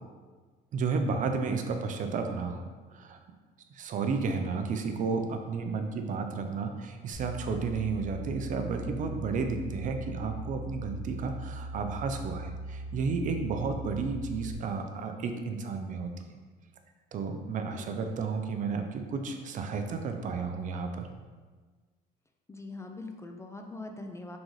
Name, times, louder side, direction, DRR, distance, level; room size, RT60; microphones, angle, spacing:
voice 1, 0.7-2.6 2.9-3.2 3.7-16.4 17.1-21.1, right 4 dB, 50° right, 5 dB, 0.5 m, -32 dB
voice 2, 1.5-1.8 17.7-18.0 22.5-24.4, left 2 dB, 15° left, 4 dB, 0.3 m, -43 dB
sound 1, 7.1-14.5, right 2 dB, 85° left, 1.5 m, -40 dB
3.9 x 3.8 x 3.1 m, 1.4 s
cardioid pair, 110°, 17 cm